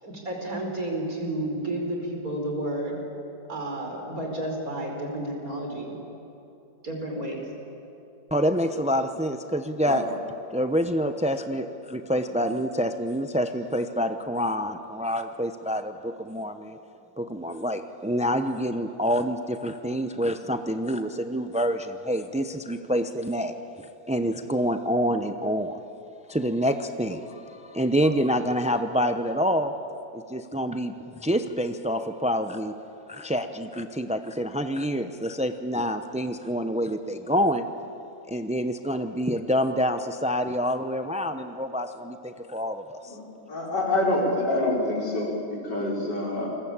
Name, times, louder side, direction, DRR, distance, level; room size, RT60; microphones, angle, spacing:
voice 1, 0.0-3.0 3.5-6.0 6.8-7.4, right 1 dB, 55° right, 1 dB, 5.3 m, -31 dB
voice 2, 8.3-10.0 10.5-16.8 17.2-23.5 24.1-25.8 26.3-29.7 30.1-32.7 33.1-37.7 38.3-43.0, equal, 10° right, 8 dB, 0.3 m, -27 dB
voice 3, 43.5-46.5, left 1 dB, 90° left, -2 dB, 5.5 m, -27 dB
29.0 x 21.5 x 8.9 m, 2.9 s
omnidirectional pair, 1.8 m